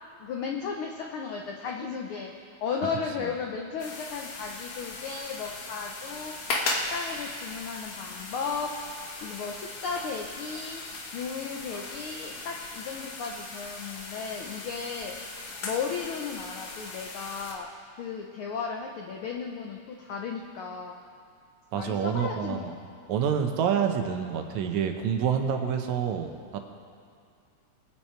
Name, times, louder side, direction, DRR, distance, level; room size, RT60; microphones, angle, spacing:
voice 1, 0.2-6.4 6.9-10.8 11.1-15.2 15.6-17.7 18.0-21.0 21.7-22.8, left 5 dB, 80° left, 1 dB, 1.2 m, -35 dB
sound 1, 3.8-17.5, left 3 dB, 65° left, 2.4 m, -38 dB
voice 2, 21.7-22.7 23.1-26.6, right 7 dB, 80° right, 5 dB, 2.2 m, -27 dB
21.5 x 7.3 x 4.5 m, 2.3 s
omnidirectional pair, 3.3 m